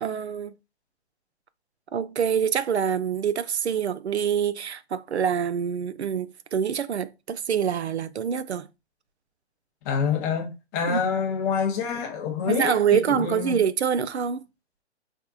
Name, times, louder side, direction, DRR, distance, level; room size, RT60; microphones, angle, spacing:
voice 1, 0.0-0.5 1.9-8.7 10.9-11.0 12.4-14.4, right 7 dB, 70° right, 0.5 m, -25 dB
voice 2, 9.8-13.6, left 6 dB, 15° left, 0.5 m, -27 dB
4.3 x 3.5 x 2.3 m
figure-of-eight pair, 120°, 34 cm